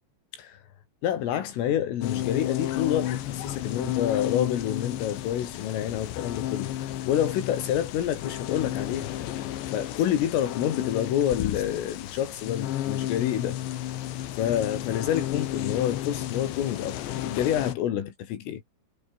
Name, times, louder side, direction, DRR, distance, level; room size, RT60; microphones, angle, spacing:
voice 1, 1.0-9.1 9.7-13.6 14.4-18.7, left 10 dB, 85° left, 5.3 m, -28 dB
sound 1, 2.0-17.7, left 12 dB, 70° left, 3.7 m, -32 dB
omnidirectional pair, 5.7 m